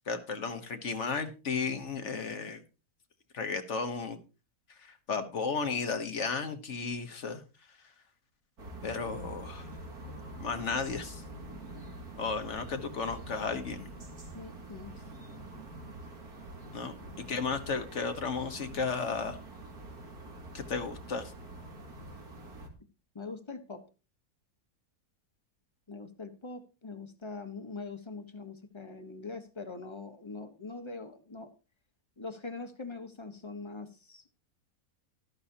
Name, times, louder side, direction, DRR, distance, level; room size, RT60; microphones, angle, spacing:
voice 1, 0.1-2.6 3.3-4.2 4.8-7.4 8.8-9.7 10.4-11.2 12.2-13.9 16.7-19.4 20.5-21.3, left 5 dB, 50° left, 8 dB, 1.5 m, -34 dB
sound 1, 8.6-22.7, right 1 dB, 80° right, 2.9 m, -46 dB
voice 2, 14.3-14.9 16.9-17.1 23.1-23.8 25.9-31.5 32.2-34.2, left 3 dB, 20° left, 7 dB, 1.1 m, -43 dB
13.0 x 12.5 x 2.8 m, 0.32 s
omnidirectional pair, 1.6 m